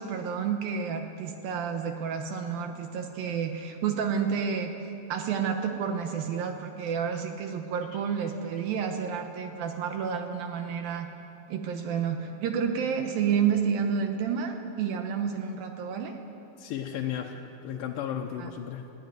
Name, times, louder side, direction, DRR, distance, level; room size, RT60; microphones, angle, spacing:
voice 1, 0.0-4.7 5.1-11.1 11.5-16.2 18.4-18.5, right 7 dB, 75° right, 5 dB, 2.7 m, -30 dB
voice 2, 16.6-17.4 17.6-18.9, left 9 dB, 75° left, 1 dB, 2.5 m, -34 dB
23.0 x 16.0 x 9.3 m, 2.9 s
omnidirectional pair, 4.4 m